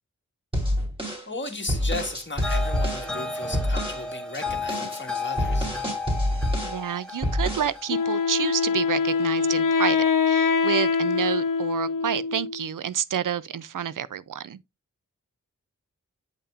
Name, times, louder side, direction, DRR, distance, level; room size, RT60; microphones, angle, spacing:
sound 1, 0.5-3.1 3.5-4.0 4.3-6.8 7.2-7.7, equal, 15° right, 3.3 m, -27 dB
voice 1, 1.3-5.7, left 2 dB, 35° left, 1.7 m, -35 dB
sound 2, 2.4-9.6, left 3 dB, 5° left, 1.8 m, -34 dB
voice 2, 6.6-10.0 10.3-14.6, right 9 dB, 80° right, 0.5 m, -29 dB
Wind instrument woodwind instrument, 7.9-12.7, left 5 dB, 85° left, 0.8 m, -24 dB
8.4 x 5.6 x 2.4 m
wide cardioid pair, 60°, 31 cm